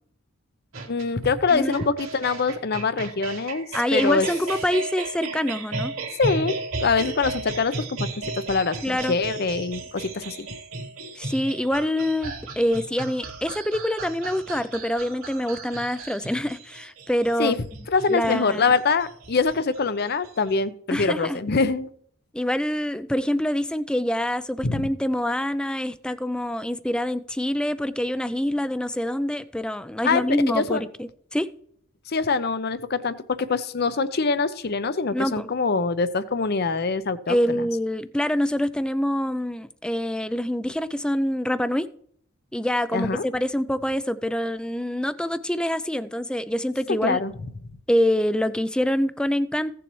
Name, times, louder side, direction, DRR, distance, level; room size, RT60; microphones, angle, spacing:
sound 1, 0.7-20.6, right 3 dB, 80° right, 2.3 m, -35 dB
voice 1, 0.9-4.3 6.2-6.5 6.8-10.5 17.4-17.6 17.9-21.9 24.6-24.8 30.0-30.2 30.5-30.8 32.1-37.6 42.9-43.2 47.0-47.3, left 4 dB, 50° left, 14 dB, 0.6 m, -24 dB
voice 2, 3.7-5.9 8.8-9.1 11.2-17.6 18.1-18.7 20.9-21.4 22.3-31.5 35.1-35.5 37.3-41.9 42.5-47.2 47.9-49.8, left 1 dB, 5° left, 13 dB, 0.4 m, -25 dB
16.0 x 7.0 x 3.1 m, 0.62 s
head